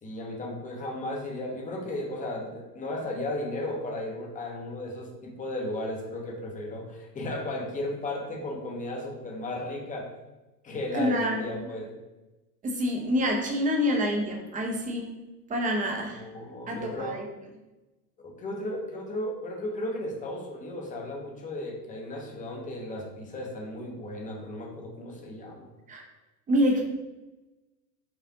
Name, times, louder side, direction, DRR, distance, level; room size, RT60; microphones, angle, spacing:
voice 1, 0.0-10.1 10.6-12.0 16.0-17.2 18.2-25.7, left 1 dB, 15° left, 0 dB, 0.8 m, -35 dB
voice 2, 10.9-11.6 12.6-15.1 15.5-16.2 16.7-17.2 25.9-26.0 26.5-26.8, equal, 15° right, 2 dB, 0.6 m, -27 dB
4.5 x 2.5 x 3.8 m, 1.1 s
hypercardioid pair, 115°, 49 cm